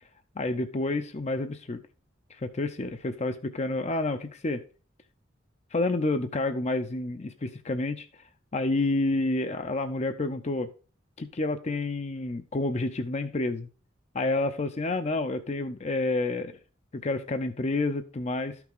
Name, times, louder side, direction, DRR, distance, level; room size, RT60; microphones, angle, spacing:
voice 1, 0.4-1.8 2.3-2.9 3.2-4.6 5.7-8.1 8.5-10.7 11.2-13.7 14.1-16.6 16.9-18.6, left 2 dB, 35° left, 0.6 m, -29 dB
12.5 x 6.0 x 3.6 m
head